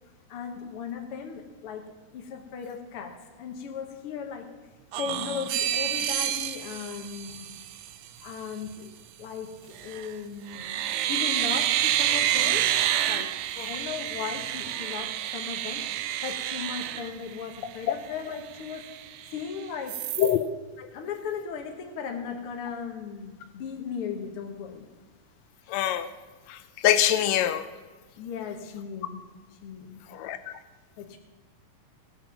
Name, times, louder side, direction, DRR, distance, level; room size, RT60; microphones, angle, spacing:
voice 1, 0.3-1.9 2.1-4.5 5.0-7.5 8.2-8.9 9.2-10.7 11.1-12.7 13.1-13.4 13.6-18.9 19.3-20.0 20.8-24.8 28.2-29.2 29.5-30.2 31.0-31.2, left 6 dB, 60° left, 4 dB, 1.6 m, -37 dB
eerie-metalic-noise, 4.9-7.9 9.8-10.1 10.5-17.8 18.2-18.3 18.6-19.5 19.9-20.4, right 12 dB, 80° right, 2.0 m, -29 dB
voice 2, 25.7-26.1 26.5-26.6 26.8-27.6 30.1-30.4, left 11 dB, 75° left, 10 dB, 1.6 m, -23 dB
18.0 x 7.7 x 5.8 m, 1.4 s
omnidirectional pair, 3.6 m